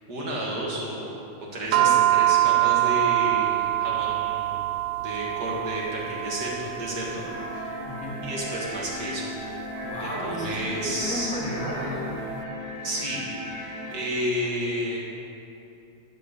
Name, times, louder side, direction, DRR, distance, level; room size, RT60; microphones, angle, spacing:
voice 1, 0.1-1.1 1.5-4.6 5.0-7.2 7.5-7.6 8.2-9.3 10.0-11.4 12.8-15.0, equal, 40° right, -5 dB, 1.9 m, -31 dB
sound 1, 1.7-12.2, right 15 dB, 75° right, 1.6 m, -26 dB
sound 2, 7.3-13.9, left 1 dB, 30° left, 1.6 m, -36 dB
voice 2, 7.8-8.2 9.8-12.1, equal, 5° left, -7 dB, 1.6 m, -33 dB
12.0 x 4.6 x 8.2 m, 2.8 s
omnidirectional pair, 3.3 m